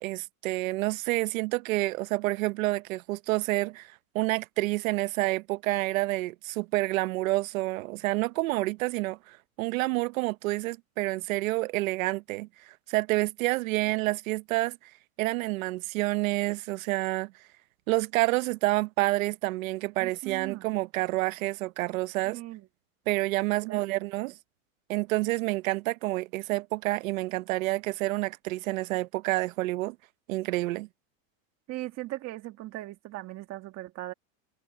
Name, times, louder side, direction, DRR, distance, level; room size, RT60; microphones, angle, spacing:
voice 1, 0.0-14.8 15.2-17.3 17.9-22.4 23.1-24.3 24.9-30.0 30.3-30.9, right 20 dB, 75° right, 1.0 m, -28 dB
voice 2, 20.0-20.7 22.2-22.7 23.5-24.3 31.7-34.1, right 17 dB, 35° right, 1.9 m, -39 dB
supercardioid pair, 150°, 41 cm